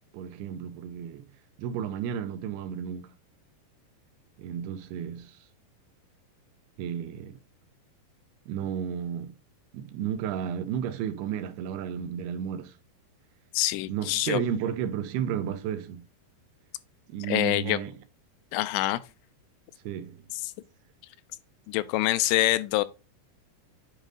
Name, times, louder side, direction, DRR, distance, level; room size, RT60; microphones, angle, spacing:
voice 1, 0.1-1.3 1.6-3.1 4.4-5.5 6.8-7.4 8.5-9.3 9.7-12.8 13.9-16.0 17.1-18.0 19.8-20.3, right 9 dB, 80° right, 2.5 m, -33 dB
voice 2, 13.5-14.4 17.3-17.8 18.5-19.0 20.4-20.5 21.7-22.8, left 17 dB, 85° left, 2.7 m, -25 dB
9.0 x 5.0 x 2.4 m
omnidirectional pair, 4.9 m